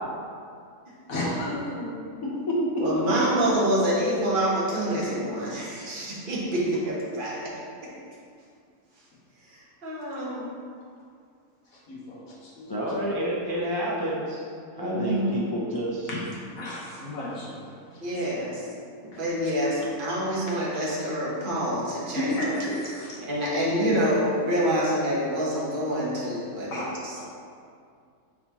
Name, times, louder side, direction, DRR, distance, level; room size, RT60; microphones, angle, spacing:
voice 1, 1.1-2.0 2.8-7.5 9.5-10.5 14.8-15.3 18.0-18.6 19.0-22.4 23.3-27.2, equal, 35° right, -6 dB, 1.4 m, -27 dB
voice 2, 12.7-14.5 14.8-16.1, equal, 25° left, -6 dB, 0.5 m, -29 dB
voice 3, 16.6-17.5 22.1-23.2 26.7-26.8, left 1 dB, 65° left, -5 dB, 1.7 m, -31 dB
8.3 x 4.3 x 3.0 m, 2.3 s
omnidirectional pair, 1.6 m